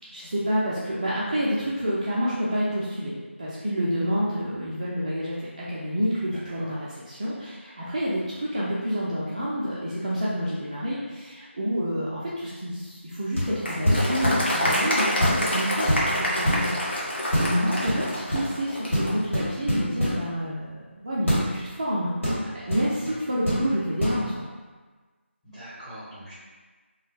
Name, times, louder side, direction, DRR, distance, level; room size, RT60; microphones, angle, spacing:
voice 1, 0.1-16.8 17.1-22.1 22.5-24.4, equal, 30° right, -8 dB, 0.3 m, -29 dB
voice 2, 6.2-6.7 25.4-26.3, equal, 5° left, -16 dB, 0.9 m, -43 dB
sound 1, 13.3-13.6 13.9-14.8 15.2-15.5 15.8-16.6 17.3-17.5 17.9-18.5 18.9-20.2 21.3-21.5 22.2-23.2 23.5-23.6 24.0-24.2, equal, 75° left, 1.4 m, -25 dB
Applause, 13.6-19.2, equal, 55° left, 0.6 m, -27 dB
2.2 x 2.0 x 3.0 m, 1.3 s
figure-of-eight pair, 165°, 7 cm